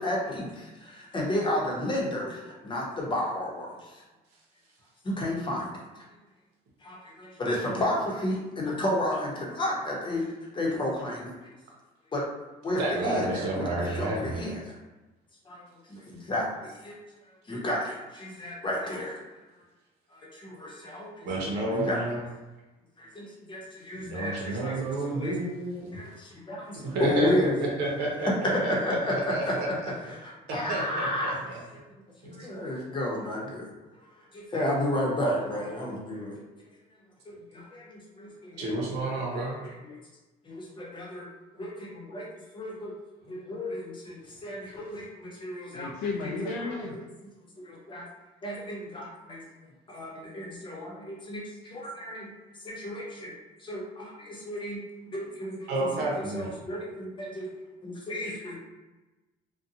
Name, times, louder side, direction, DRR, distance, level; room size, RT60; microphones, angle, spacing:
voice 1, 0.0-4.0 5.0-5.7 6.8-10.2 10.5-11.3 12.1-12.2 12.6-14.7 15.5-17.0 17.5-19.2 20.1-21.3 21.5-22.0 23.0-24.8 25.0-25.3 25.9-27.5 28.2-28.3 28.6-29.5 30.1-31.4 31.7-31.8 32.2-33.7 34.3-36.4 37.3-40.0 40.4-41.3 41.5-42.9 43.3-45.9 46.2-47.3 47.6-48.1 48.4-49.4 49.9-52.3 52.6-53.3 53.6-57.5 57.8-58.6, left 1 dB, 30° left, -3 dB, 0.8 m, -32 dB
voice 2, 12.8-14.4 21.2-22.2 24.0-25.9 26.7-29.7 30.5-31.6 32.2-32.5 38.5-39.6 55.7-56.5, right 2 dB, 85° right, -3 dB, 0.8 m, -30 dB
voice 3, 45.7-46.9, left 4 dB, 90° left, -2 dB, 0.4 m, -33 dB
2.5 x 2.2 x 2.7 m, 1.1 s
cardioid pair, 110°, 17 cm